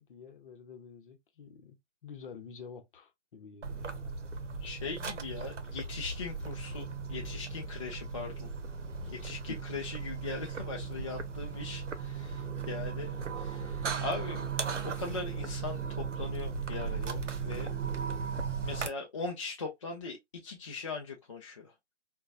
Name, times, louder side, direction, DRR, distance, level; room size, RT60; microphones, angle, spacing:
voice 1, 0.0-1.8 2.0-4.1 9.5-9.6, left 6 dB, 45° left, 0.8 m, -48 dB
sound 1, 3.6-18.9, right 5 dB, 85° right, 0.8 m, -37 dB
voice 2, 4.6-8.5 9.0-14.5 14.8-17.7 18.6-20.2 20.4-21.7, left 4 dB, 30° left, 0.4 m, -40 dB
3.7 x 2.3 x 2.3 m
figure-of-eight pair, 135°, 36 cm